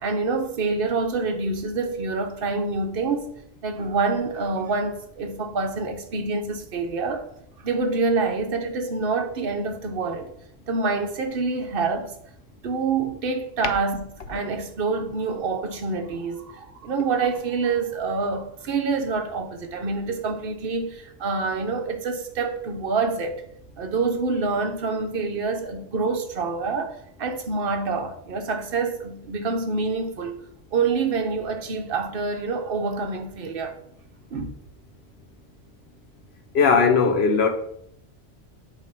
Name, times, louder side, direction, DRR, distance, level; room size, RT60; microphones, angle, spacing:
voice 1, 0.0-3.3 3.6-7.3 7.6-10.3 10.7-12.1 12.6-23.4 23.8-26.9 27.2-30.4 30.7-33.8 34.3-34.5, right 4 dB, 55° right, 1.0 m, -26 dB
voice 2, 36.5-37.5, left 5 dB, 65° left, 1.1 m, -18 dB
8.4 x 2.8 x 5.3 m
omnidirectional pair, 1.2 m